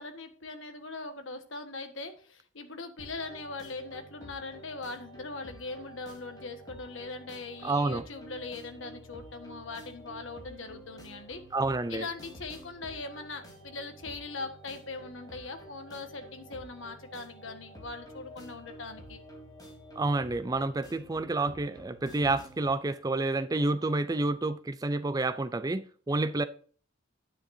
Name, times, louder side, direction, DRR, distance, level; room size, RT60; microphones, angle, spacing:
voice 1, 0.0-11.4 11.9-19.2, left 3 dB, 75° left, 1.5 m, -41 dB
sound 1, 3.0-22.7, equal, 20° left, 3.7 m, -50 dB
voice 2, 7.6-8.0 11.5-12.0 20.0-26.4, right 2 dB, 20° right, 0.4 m, -29 dB
9.7 x 8.9 x 2.7 m
head